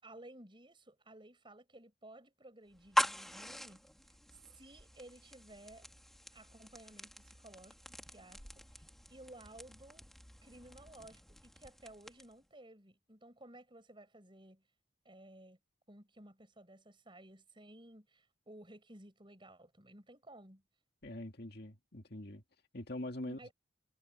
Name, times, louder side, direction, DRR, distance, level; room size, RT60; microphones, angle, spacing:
voice 1, 0.0-3.8 4.5-5.9 6.3-8.6 9.1-10.1 10.4-14.6 15.0-15.6 15.9-20.6 23.2-23.5, right 1 dB, 25° right, 6.7 m, -56 dB
sound 1, 2.7-12.5, equal, ahead, 1.9 m, -42 dB
voice 2, 21.0-22.4 22.7-23.5, left 1 dB, 55° left, 2.2 m, -44 dB
head